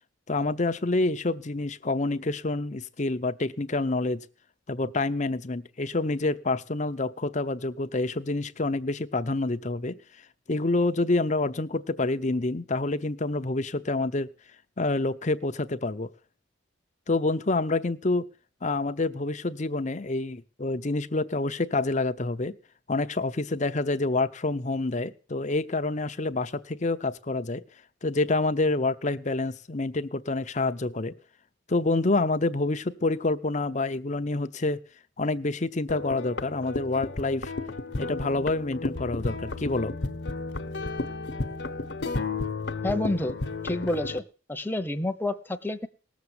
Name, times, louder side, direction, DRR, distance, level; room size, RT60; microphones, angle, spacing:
voice 1, 0.3-4.3 4.7-10.0 10.5-14.3 14.8-16.1 17.1-18.3 18.6-22.6 22.9-27.6 28.0-31.1 31.7-34.8 35.2-37.5 38.0-39.9, left 2 dB, 40° left, 11 dB, 0.8 m, -27 dB
sound 1, 35.9-44.2, left 3 dB, 60° left, 1.1 m, -33 dB
voice 2, 42.8-43.4 43.6-44.2 44.5-45.9, left 1 dB, 10° left, 6 dB, 0.9 m, -28 dB
18.5 x 7.1 x 7.9 m, 0.37 s
head